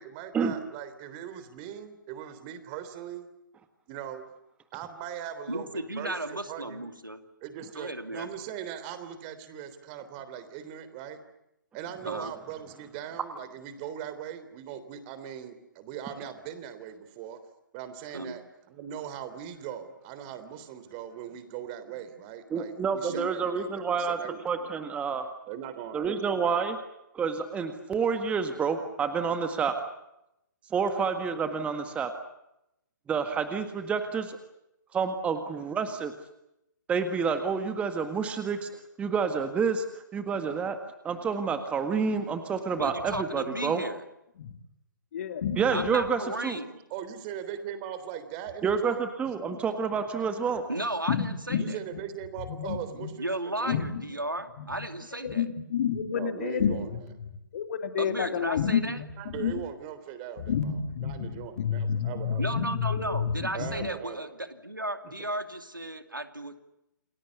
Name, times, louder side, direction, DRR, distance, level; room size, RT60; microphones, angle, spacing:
voice 1, 0.0-3.3 3.9-4.2 4.7-6.9 7.4-11.2 11.7-17.4 17.7-24.8 25.5-26.6 46.9-49.0 51.6-53.8 56.1-57.0 59.2-62.4 63.5-64.3 65.0-65.1, right 9 dB, 30° right, 11 dB, 3.4 m, -40 dB
voice 2, 5.5-7.2 7.8-8.3 12.1-12.3 18.1-18.4 23.1-23.3 42.8-44.0 45.7-46.8 50.7-51.8 53.2-55.4 58.0-59.0 62.4-66.6, right 1 dB, 90° right, 9 dB, 2.6 m, -34 dB
voice 3, 22.5-24.2 24.4-25.3 25.9-26.8 27.1-29.7 30.7-32.1 33.1-34.4 34.9-36.1 36.9-38.7 39.0-40.8 41.0-43.8 45.6-46.6 48.6-50.6, right 5 dB, 10° right, 8 dB, 1.8 m, -28 dB
voice 4, 45.1-45.8 49.5-49.6 51.1-51.8 52.5-53.1 53.7-54.9 55.2-56.9 57.2-59.6 60.4-63.9, left 7 dB, 45° left, 8 dB, 3.1 m, -30 dB
29.0 x 20.5 x 8.3 m, 0.85 s
figure-of-eight pair, 130°, 11 cm